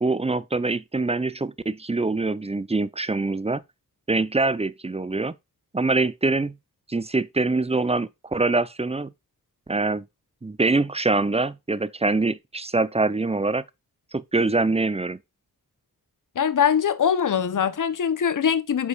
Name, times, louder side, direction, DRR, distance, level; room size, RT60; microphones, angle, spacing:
voice 1, 0.0-3.6 4.1-5.3 5.7-6.6 6.9-9.1 9.7-10.0 10.4-13.6 14.1-15.2, right 3 dB, 20° right, 0.6 m, -24 dB
voice 2, 16.4-18.9, left 7 dB, 60° left, 0.8 m, -22 dB
8.1 x 5.2 x 2.4 m
cardioid pair, 50°, 35 cm